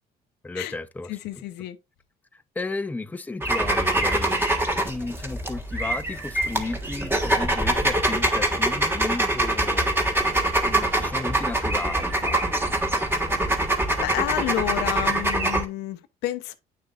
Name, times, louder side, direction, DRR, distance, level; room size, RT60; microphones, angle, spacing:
voice 1, 0.4-1.4 2.3-4.4 4.9-10.2 10.6-12.7, left 3 dB, 10° left, 0.5 m, -34 dB
voice 2, 1.1-1.8 13.3-13.4 14.0-16.5, left 14 dB, 90° left, 0.8 m, -30 dB
sound 1, 3.4-15.6, right 1 dB, 15° right, 1.5 m, -24 dB
8.6 x 6.6 x 2.4 m
cardioid pair, 110°, 17 cm